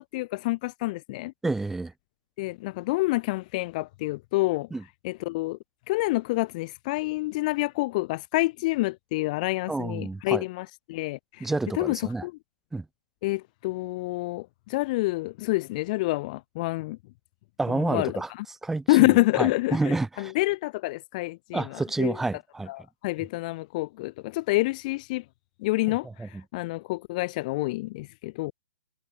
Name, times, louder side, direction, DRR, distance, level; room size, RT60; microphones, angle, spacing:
voice 1, 0.0-1.3 2.4-4.7 5.0-5.6 5.9-12.3 13.2-17.0 17.7-18.4 18.9-22.2 22.7-25.2 25.6-28.5, left 21 dB, 30° left, 2.6 m, -28 dB
voice 2, 1.4-1.9 4.7-4.8 9.7-10.4 11.4-12.3 12.7-12.8 17.6-18.3 18.6-20.3 21.5-22.7 25.9-26.4, right 3 dB, 5° right, 7.7 m, -29 dB
hypercardioid pair, 170°, 8 cm